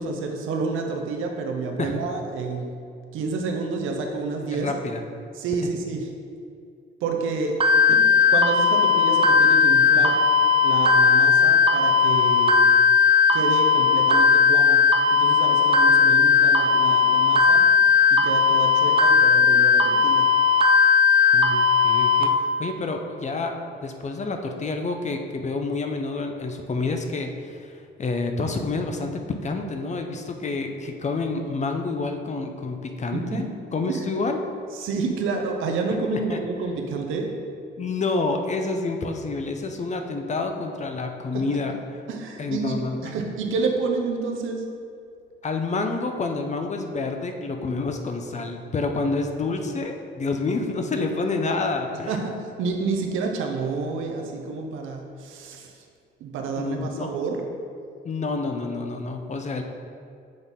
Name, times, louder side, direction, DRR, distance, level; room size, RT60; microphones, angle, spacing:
voice 1, 0.0-2.7 3.1-4.7 5.3-6.1 7.0-7.6 7.9-10.2 10.6-12.7 13.3-14.8 15.1-17.6 18.1-20.3 33.1-33.4 33.9-34.0 34.7-37.3 41.3-41.4 42.1-42.8 43.0-44.6 52.1-55.8 56.2-57.4, right 4 dB, 85° right, 3 dB, 0.8 m, -29 dB
voice 2, 4.5-5.0 21.3-22.3 22.6-27.7 28.0-33.5 33.7-34.4 36.1-36.4 37.8-41.8 42.4-43.1 45.4-52.1 56.6-57.1 58.0-59.6, left 3 dB, 35° left, 5 dB, 0.6 m, -28 dB
sound 1, 7.6-22.2, left 5 dB, 25° right, 0.6 m, -17 dB
7.7 x 4.1 x 3.6 m, 2.3 s
cardioid pair, 90°, 20 cm